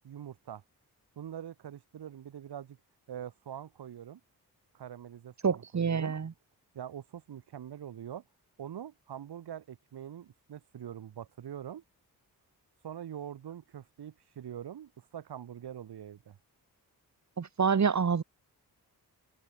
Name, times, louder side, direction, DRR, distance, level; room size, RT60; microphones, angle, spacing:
voice 1, 0.0-0.6 1.2-2.8 3.1-4.2 4.7-6.1 6.7-8.2 8.6-11.8 12.8-16.4, right 10 dB, 90° right, 7.6 m, -44 dB
voice 2, 5.4-6.3 17.4-18.2, right 6 dB, 45° right, 2.0 m, -27 dB
cardioid pair, 75°, 38 cm